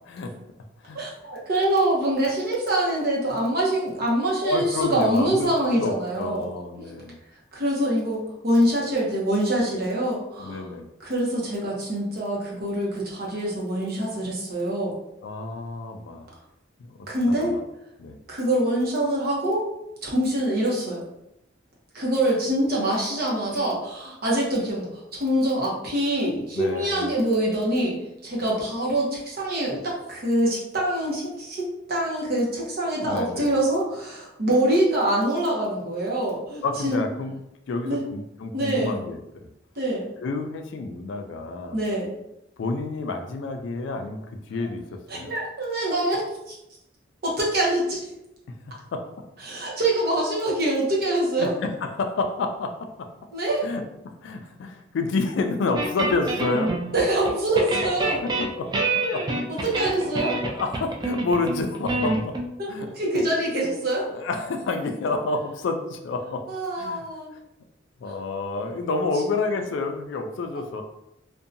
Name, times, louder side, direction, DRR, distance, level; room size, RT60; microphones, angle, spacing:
voice 1, 0.9-6.4 7.5-10.7 11.0-14.9 17.1-17.6 18.3-19.6 20.0-21.0 21.9-28.0 28.2-31.6 31.9-37.0 37.8-38.0 38.5-39.0 39.7-40.1 41.7-42.1 44.6-44.7 45.1-46.2 46.5-46.6 47.2-48.0 49.4-51.5 53.3-53.6 56.9-58.2 59.5-60.4 62.6-62.7 62.9-64.1 66.5-67.3 70.5-70.6, right 1 dB, 55° right, -4 dB, 0.8 m, -25 dB
voice 2, 4.4-5.5 5.8-7.2 10.4-10.9 15.2-16.3 16.8-17.6 18.0-18.2 26.5-27.1 33.0-33.5 36.6-37.3 37.7-39.2 40.2-41.8 42.6-45.3 48.5-49.0 51.4-53.1 53.6-56.8 58.2-58.9 59.1-59.3 59.6-59.7 60.4-62.4 62.7-62.9 64.1-66.5 66.8-67.0 68.0-70.8, left 3 dB, 70° left, 5 dB, 0.3 m, -29 dB
sound 1, 55.8-57.3 57.6-62.5, right 2 dB, 25° right, 0.3 m, -27 dB
2.7 x 2.2 x 2.5 m, 0.86 s
head